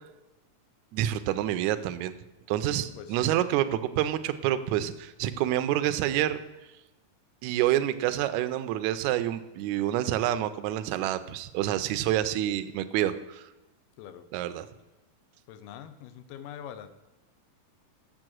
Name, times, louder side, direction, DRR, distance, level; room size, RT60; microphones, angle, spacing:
voice 1, 0.9-2.1 2.5-6.4 7.4-13.5 14.3-14.7, right 12 dB, 80° right, 11 dB, 1.7 m, -28 dB
voice 2, 3.0-3.3 14.0-14.3 15.5-16.9, left 9 dB, 90° left, 11 dB, 2.4 m, -43 dB
7.7 x 7.0 x 6.2 m, 1.1 s
omnidirectional pair, 3.8 m